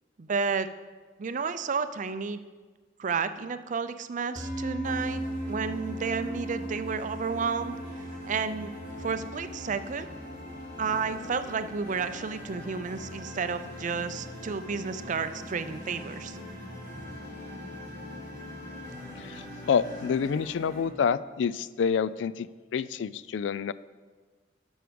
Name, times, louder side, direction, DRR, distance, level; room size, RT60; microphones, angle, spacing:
voice 1, 0.2-0.7 1.2-2.4 3.0-5.2 5.5-7.8 8.3-8.7 9.0-10.1 10.8-16.4, right 5 dB, 45° right, 11 dB, 0.5 m, -31 dB
sound 1, 4.4-14.8, right 1 dB, 15° right, 2.3 m, -39 dB
sound 2, 4.8-20.8, left 2 dB, 35° left, 3.4 m, -44 dB
sound 3, 6.9-20.1, equal, 20° left, 2.1 m, -48 dB
voice 2, 19.2-23.7, left 6 dB, 75° left, 17 dB, 0.3 m, -28 dB
11.5 x 6.3 x 5.1 m, 1.4 s
head